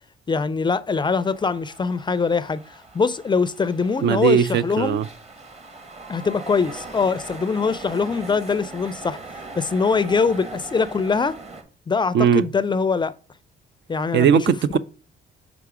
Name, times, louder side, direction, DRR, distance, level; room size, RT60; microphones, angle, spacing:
voice 1, 0.3-5.0 6.1-9.2 9.6-11.4 11.9-13.1 13.9-14.4, left 5 dB, 25° left, 0.4 m, -23 dB
sound 1, 1.1-11.6, right 3 dB, 35° right, 1.2 m, -40 dB
voice 2, 4.0-5.1 12.1-12.4 14.1-14.8, right 7 dB, 65° right, 0.4 m, -18 dB
5.8 x 3.6 x 4.8 m
cardioid pair, 90°, 20 cm